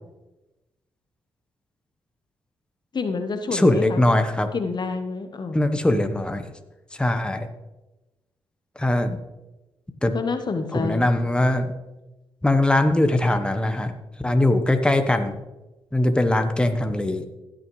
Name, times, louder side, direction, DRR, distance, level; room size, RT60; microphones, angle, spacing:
voice 1, 2.9-4.0 4.5-5.7 10.1-11.1, left 4 dB, 45° left, 7 dB, 1.0 m, -28 dB
voice 2, 3.5-4.5 5.5-6.4 6.9-7.5 8.8-9.2 10.0-10.1 10.7-11.7 12.4-13.9 14.2-15.4 15.9-17.2, left 1 dB, 10° left, 7 dB, 1.1 m, -21 dB
16.5 x 6.4 x 3.2 m, 1.0 s
supercardioid pair, 50°, 10 cm